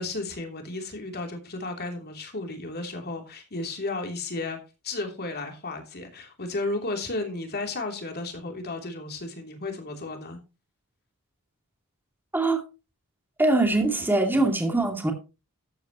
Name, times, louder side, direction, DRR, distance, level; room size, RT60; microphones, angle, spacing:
voice 1, 0.0-4.6 4.8-10.4, left 2 dB, 45° left, 3.1 m, -33 dB
voice 2, 13.4-15.1, right 2 dB, 10° right, 2.4 m, -22 dB
13.5 x 9.1 x 3.0 m
head